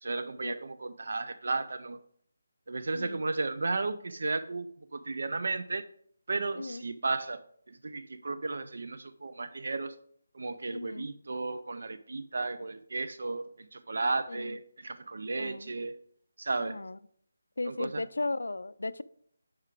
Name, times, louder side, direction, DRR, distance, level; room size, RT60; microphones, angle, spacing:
voice 1, 0.0-2.0 2.7-4.7 4.9-5.9 6.3-10.0 10.3-16.0 16.4-16.8 17.7-18.0, right 3 dB, 65° right, 11 dB, 0.3 m, -34 dB
voice 2, 10.7-11.1 14.3-14.6 15.4-15.7 16.6-17.0 17.6-19.0, left 2 dB, 85° left, 15 dB, 0.3 m, -36 dB
5.8 x 4.8 x 4.4 m, 0.66 s
figure-of-eight pair, 165°, 0 cm